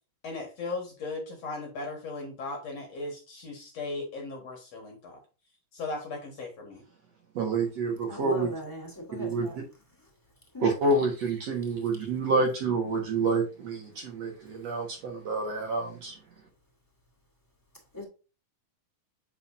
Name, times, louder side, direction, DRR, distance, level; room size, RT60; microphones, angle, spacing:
voice 1, 0.2-5.2 5.7-6.8, left 3 dB, 55° left, 2.5 m, -37 dB
voice 2, 7.4-8.5 9.2-9.6 10.6-16.2, right 3 dB, 55° right, 2.2 m, -28 dB
voice 3, 8.1-9.6 9.9-10.1 10.5-10.7 17.9-18.0, left 1 dB, 5° left, 3.0 m, -38 dB
8.0 x 5.9 x 2.6 m
omnidirectional pair, 3.9 m